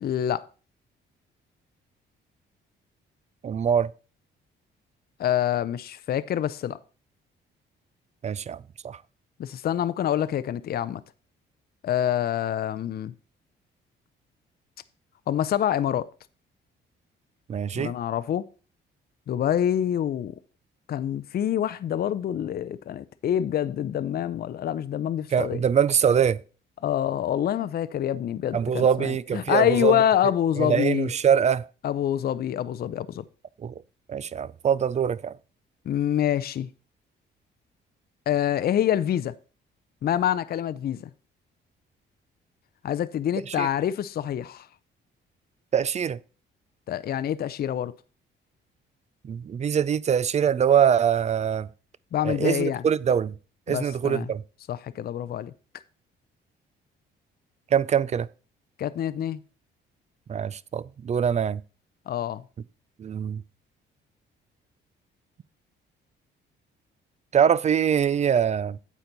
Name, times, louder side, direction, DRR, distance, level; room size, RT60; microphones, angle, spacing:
voice 1, 0.0-0.5 5.2-6.8 9.4-11.0 11.8-13.1 15.3-16.1 17.8-18.5 19.3-20.3 20.9-25.6 26.8-31.1 31.8-33.2 35.9-36.7 38.3-39.3 40.0-41.1 42.8-44.7 46.9-47.9 52.1-52.8 53.7-54.3 54.7-55.5 58.8-59.4 62.1-62.4, left 10 dB, 50° left, 0.5 m, -26 dB
voice 2, 3.4-3.9 8.2-8.6 8.8-9.0 17.5-17.9 25.3-26.4 28.5-30.0 30.6-31.6 33.6-33.7 34.1-35.4 43.5-43.7 45.7-46.2 49.2-51.7 52.2-53.3 53.7-54.4 57.7-58.3 60.3-61.6 63.0-63.4 67.3-68.8, right 8 dB, 35° right, 0.4 m, -23 dB
9.0 x 7.0 x 4.0 m
cardioid pair, 90°, 20 cm